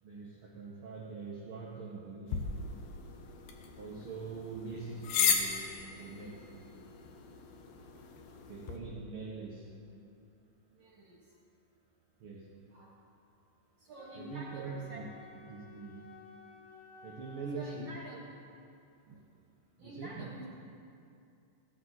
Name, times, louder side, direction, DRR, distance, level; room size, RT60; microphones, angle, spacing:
voice 1, 0.0-2.5 3.8-6.4 8.5-9.7 12.2-12.6 14.1-15.1 15.5-16.1 17.0-17.9 19.8-20.2, right 4 dB, 80° right, -2 dB, 1.2 m, -43 dB
sound 1, 2.3-8.8, left 6 dB, 80° left, 2.7 m, -36 dB
voice 2, 10.7-11.2 12.7-13.0 13.8-15.1 17.5-18.2 19.1-19.2 19.8-20.4, right 2 dB, 60° right, -2 dB, 1.9 m, -47 dB
Wind instrument woodwind instrument, 13.9-17.8, left 5 dB, 50° left, 1.9 m, -55 dB
16.0 x 12.5 x 4.1 m, 2.5 s
omnidirectional pair, 4.0 m